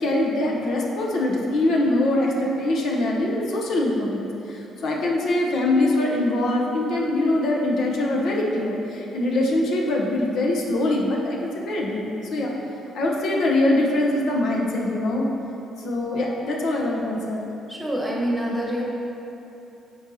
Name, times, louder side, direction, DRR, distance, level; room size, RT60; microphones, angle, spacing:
voice 1, 0.0-12.5 12.9-15.2 15.8-17.5, left 1 dB, 70° left, -2 dB, 0.8 m, -23 dB
voice 2, 17.7-18.8, equal, 5° right, -4 dB, 1.1 m, -26 dB
9.5 x 4.0 x 2.8 m, 2.9 s
cardioid pair, 100°, 0 cm